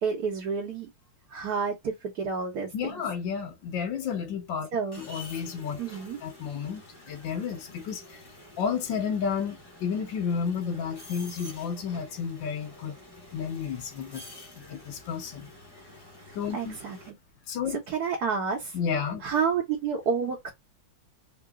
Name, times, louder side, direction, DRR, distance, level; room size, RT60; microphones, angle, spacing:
voice 1, 0.0-0.9 1.3-3.0 4.7-5.0 5.8-6.2 16.5-17.1 17.7-18.8 19.2-20.5, right 5 dB, 60° right, 1.4 m, -30 dB
voice 2, 2.7-4.7 5.0-5.8 6.2-8.2 8.6-13.0 13.3-14.2 14.5-15.5 16.3-16.8 17.5-17.8 18.7-19.2, left 6 dB, 75° left, 1.5 m, -31 dB
sound 1, 4.9-17.1, left 1 dB, 25° left, 0.5 m, -49 dB
3.8 x 2.2 x 3.5 m
omnidirectional pair, 2.0 m